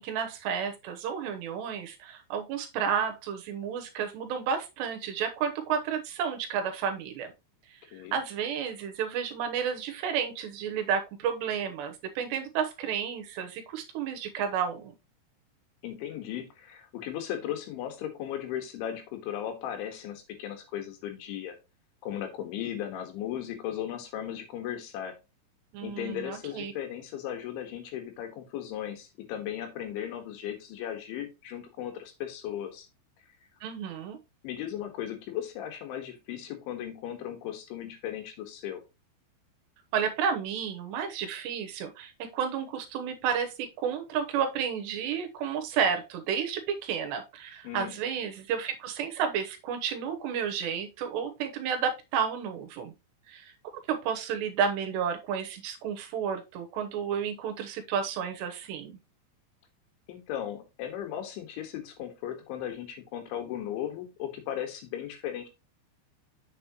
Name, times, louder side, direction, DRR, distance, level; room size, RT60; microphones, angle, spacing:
voice 1, 0.0-7.3 8.1-14.9 25.7-26.7 33.6-34.2 39.9-52.9 53.3-53.5 53.9-59.0, right 7 dB, 75° right, 6 dB, 3.0 m, -31 dB
voice 2, 15.8-21.6 22.0-25.1 25.8-32.9 34.4-38.8 47.6-48.0 60.1-65.5, left 10 dB, 85° left, 6 dB, 4.0 m, -36 dB
7.8 x 7.2 x 3.0 m, 0.26 s
omnidirectional pair, 5.3 m